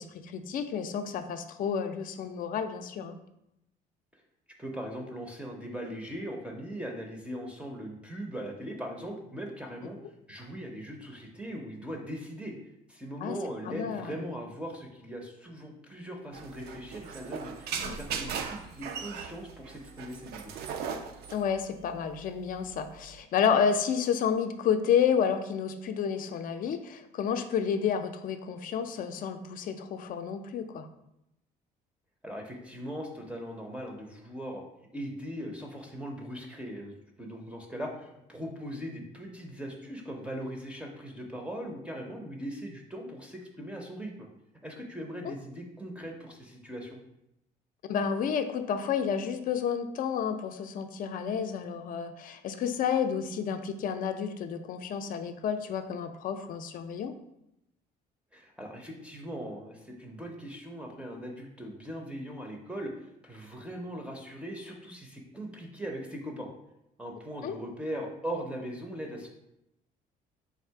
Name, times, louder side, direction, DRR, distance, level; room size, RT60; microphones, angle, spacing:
voice 1, 0.0-3.2 13.2-13.4 13.7-14.2 17.8-18.0 21.3-30.9 45.2-45.3 47.9-57.2 67.4-67.5, left 7 dB, 55° left, 8 dB, 0.4 m, -30 dB
voice 2, 4.6-10.0 10.3-12.5 12.9-20.5 32.2-34.6 34.9-44.3 44.6-47.0 58.3-62.9 63.2-66.5 67.0-69.3, equal, 5° right, 1 dB, 0.5 m, -40 dB
sound 1, 16.3-23.2, right 6 dB, 70° right, 0.4 m, -38 dB
3.5 x 2.4 x 4.5 m, 0.84 s
cardioid pair, 110°, 17 cm